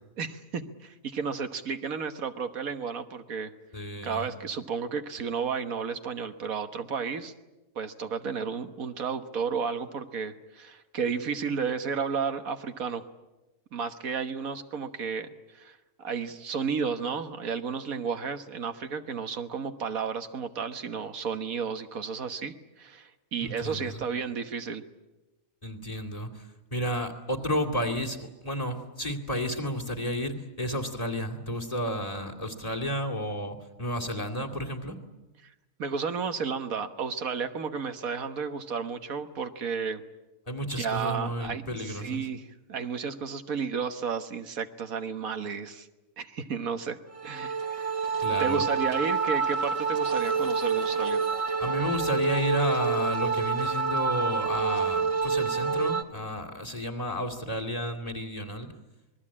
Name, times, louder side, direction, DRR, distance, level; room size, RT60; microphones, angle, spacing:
voice 1, 0.2-3.5 4.0-7.3 7.7-13.0 13.7-24.8 35.8-40.0 40.8-42.4 42.7-45.9 46.2-51.2, right 6 dB, 80° right, 8 dB, 1.7 m, -32 dB
voice 2, 3.7-4.3 23.4-24.0 25.6-35.0 40.5-42.3 48.2-48.7 51.6-58.7, equal, 25° left, 1 dB, 2.5 m, -32 dB
sound 1, 47.1-56.0, right 5 dB, 25° right, 1.2 m, -27 dB
26.5 x 20.5 x 8.7 m, 1.1 s
omnidirectional pair, 1.5 m